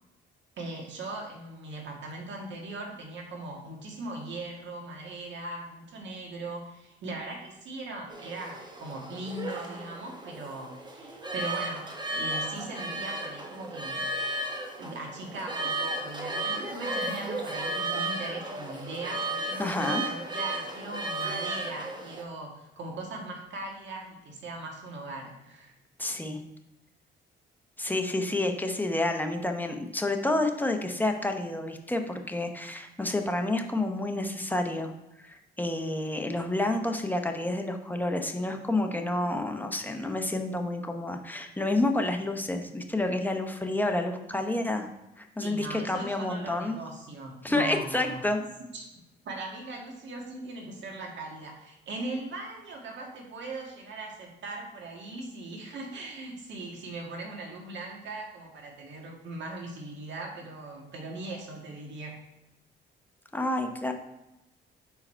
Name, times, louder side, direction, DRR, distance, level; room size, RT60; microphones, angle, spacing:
voice 1, 0.6-14.1 14.8-25.7 45.4-48.2 48.7-48.9 49.2-62.2, right 2 dB, 65° right, 0 dB, 1.7 m, -39 dB
sound 1, 8.1-22.2, right 2 dB, 20° right, 1.0 m, -34 dB
voice 2, 19.6-20.0 26.0-26.4 27.8-34.9 35.2-44.9 45.2-46.8 47.4-48.4 63.3-63.9, left 2 dB, 10° left, 4 dB, 0.8 m, -29 dB
5.6 x 4.8 x 4.4 m, 0.90 s
cardioid pair, 90°, 20 cm